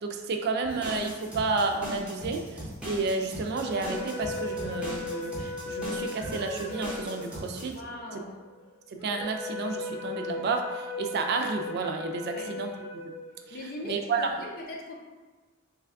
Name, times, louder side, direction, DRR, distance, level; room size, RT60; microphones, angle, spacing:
voice 1, 0.0-7.8 8.1-8.2 8.9-12.7 13.0-13.1 13.5-13.6 13.8-14.3, right 3 dB, 50° right, 4 dB, 0.3 m, -31 dB
sound 1, 0.6-7.7, equal, 5° right, 0.7 m, -39 dB
sound 2, 3.3-13.8, left 2 dB, 65° left, 1.2 m, -37 dB
voice 2, 7.7-8.4 12.3-12.5 13.5-15.0, left 1 dB, 45° left, -1 dB, 0.6 m, -40 dB
3.3 x 2.3 x 3.5 m, 1.3 s
head